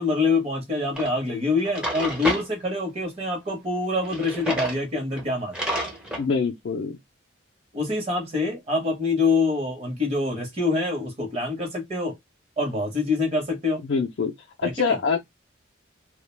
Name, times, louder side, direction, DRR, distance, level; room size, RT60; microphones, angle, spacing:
voice 1, 0.0-5.5 7.7-12.1 12.6-13.8 14.6-15.0, left 3 dB, 30° right, 0.8 m, -25 dB
Drawer open or close, 1.0-1.1 1.6-2.5 4.0-4.8 5.2-5.3 5.5-6.2, right 1 dB, 5° right, 0.5 m, -29 dB
voice 2, 6.2-7.0 13.8-14.3 14.6-15.2, left 5 dB, 55° left, 0.4 m, -24 dB
2.3 x 2.1 x 3.1 m
head